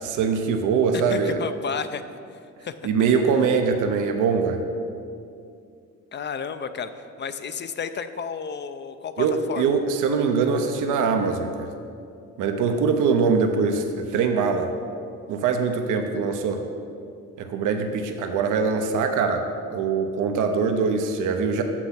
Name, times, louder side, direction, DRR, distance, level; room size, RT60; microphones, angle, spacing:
voice 1, 0.0-1.4 2.8-4.6 9.2-11.7 12.4-14.7 15.3-16.6 17.4-19.4 19.7-21.6, right 5 dB, 85° right, 5 dB, 0.7 m, -23 dB
voice 2, 1.1-2.0 2.6-2.7 6.1-6.9 7.2-9.8, left 6 dB, 35° left, 11 dB, 0.5 m, -32 dB
6.8 x 6.1 x 5.8 m, 2.4 s
cardioid pair, 90°, 30 cm